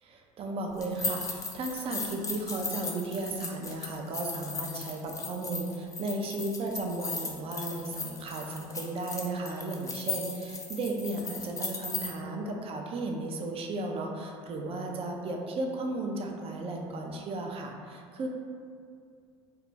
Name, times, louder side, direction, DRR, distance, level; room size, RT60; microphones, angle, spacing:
voice 1, 0.0-18.3, right 2 dB, 40° right, 2 dB, 0.4 m, -35 dB
sound 1, 0.8-12.1, left 4 dB, 20° left, 0.4 m, -37 dB
2.3 x 2.1 x 3.2 m, 2.3 s
hypercardioid pair, 70°, 15 cm